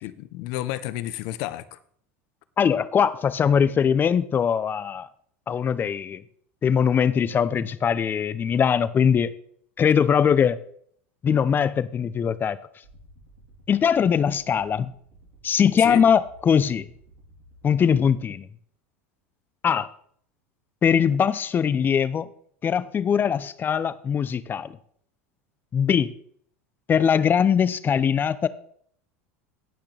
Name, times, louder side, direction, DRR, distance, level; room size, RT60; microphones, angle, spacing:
voice 1, 0.0-1.8 15.8-16.0, left 15 dB, 60° left, 0.8 m, -31 dB
voice 2, 2.6-5.1 5.5-6.2 6.6-9.3 9.8-10.6 11.2-12.6 13.7-14.9 15.4-16.9 17.6-18.5 19.6-19.9 20.8-22.3 22.6-24.7 25.7-26.1 26.9-28.5, left 7 dB, 30° left, 0.7 m, -21 dB
sound 1, 12.8-18.0, right 1 dB, 75° right, 3.5 m, -53 dB
17.5 x 5.9 x 3.4 m
hypercardioid pair, 95°, 7 cm